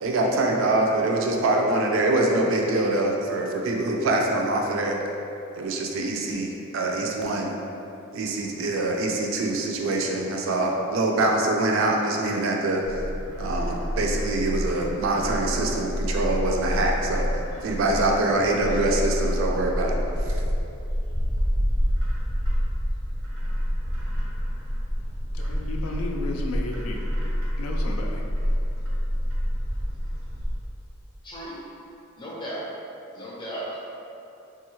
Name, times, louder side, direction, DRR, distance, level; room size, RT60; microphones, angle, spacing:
voice 1, 0.0-5.0 5.5-6.5 6.7-7.5 8.1-12.8 13.4-17.3 17.6-20.0, right 2 dB, 60° right, 1 dB, 0.3 m, -24 dB
Bird, 12.8-30.6, equal, 90° right, 0.7 m, -28 dB
voice 2, 25.3-27.0 27.6-28.2, left 2 dB, 80° left, 1 dB, 0.3 m, -33 dB
voice 3, 31.2-31.6 32.2-32.6 33.1-33.8, right 1 dB, 20° left, -6 dB, 0.5 m, -35 dB
3.0 x 2.3 x 3.0 m, 2.8 s
head